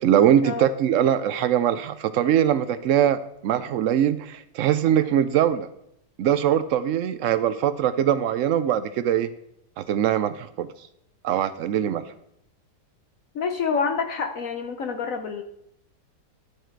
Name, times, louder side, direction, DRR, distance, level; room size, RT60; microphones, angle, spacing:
voice 1, 0.0-5.7 6.2-9.3 9.8-10.7 11.2-12.0, right 10 dB, 85° right, 12 dB, 0.6 m, -22 dB
voice 2, 13.3-15.4, left 5 dB, 60° left, 6 dB, 1.0 m, -27 dB
12.0 x 6.5 x 4.5 m, 0.77 s
omnidirectional pair, 1.9 m